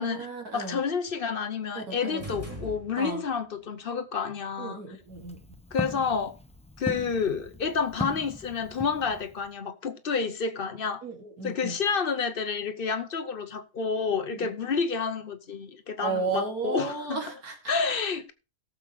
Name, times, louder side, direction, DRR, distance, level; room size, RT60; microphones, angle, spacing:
voice 1, 0.0-0.8 1.7-2.2 3.0-3.2 4.6-5.4 11.0-11.7 14.4-14.5 16.0-17.7, right 4 dB, 80° right, 2.8 m, -34 dB
voice 2, 0.5-4.8 5.7-6.4 6.8-11.0 11.4-17.2 17.7-18.3, left 5 dB, 45° left, 0.9 m, -29 dB
sound 1, 2.2-3.4, right 1 dB, 10° right, 3.0 m, -40 dB
Walk footsteps, 4.9-9.5, left 1 dB, 5° left, 0.5 m, -39 dB
17.5 x 7.2 x 3.2 m
omnidirectional pair, 1.5 m